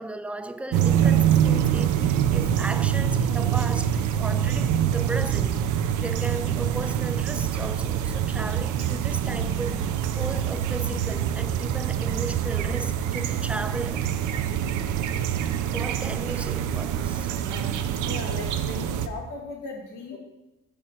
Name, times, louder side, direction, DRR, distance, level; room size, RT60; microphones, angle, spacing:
voice 1, 0.0-5.7 6.0-9.9 10.2-14.1 15.7-17.3, right 2 dB, 5° right, 0.4 m, -35 dB
sound 1, 0.7-19.1, right 9 dB, 85° right, 0.5 m, -25 dB
voice 2, 17.4-20.2, left 3 dB, 90° left, 1.9 m, -37 dB
7.2 x 4.9 x 5.5 m
cardioid pair, 90°, 30 cm